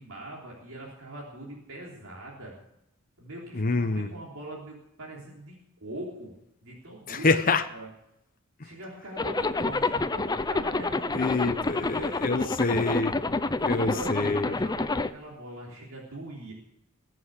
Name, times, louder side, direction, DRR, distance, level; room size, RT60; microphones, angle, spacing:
voice 1, 0.0-2.5 3.2-5.6 5.8-6.3 6.6-7.3 7.7-7.9 8.6-12.8 13.6-16.5, right 1 dB, 80° right, -4 dB, 3.6 m, -42 dB
voice 2, 3.5-4.1 7.1-7.6 11.1-14.5, left 3 dB, 40° left, 7 dB, 0.9 m, -27 dB
Zipper (clothing), 9.2-15.1, left 3 dB, 20° left, 0.5 m, -28 dB
21.0 x 7.7 x 6.6 m, 0.82 s
head